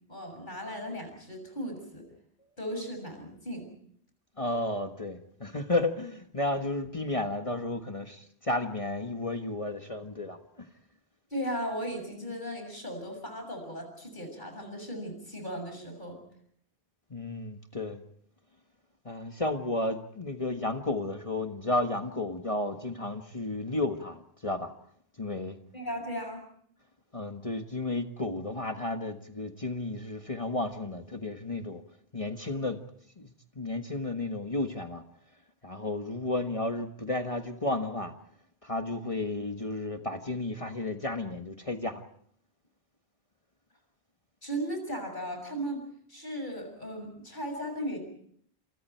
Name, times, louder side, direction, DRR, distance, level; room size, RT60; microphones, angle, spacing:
voice 1, 0.1-2.1 2.6-3.7 11.3-16.2 25.7-26.4 44.4-45.8 46.1-48.0, equal, 45° left, 4 dB, 7.0 m, -36 dB
voice 2, 4.4-10.7 17.1-18.0 19.0-24.7 25.2-25.6 27.1-31.8 32.1-32.8 33.2-35.0 35.6-38.1 38.6-42.0, left 2 dB, 30° left, 5 dB, 1.5 m, -32 dB
29.0 x 27.5 x 4.5 m, 0.63 s
omnidirectional pair, 1.1 m